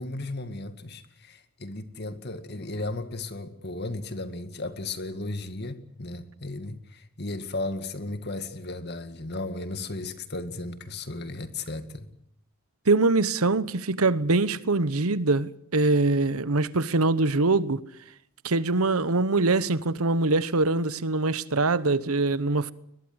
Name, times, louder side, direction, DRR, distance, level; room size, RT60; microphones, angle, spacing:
voice 1, 0.0-12.1, left 2 dB, 50° left, 2.1 m, -35 dB
voice 2, 12.9-17.8 18.4-22.7, right 3 dB, 85° right, 1.1 m, -23 dB
21.5 x 21.5 x 8.0 m
head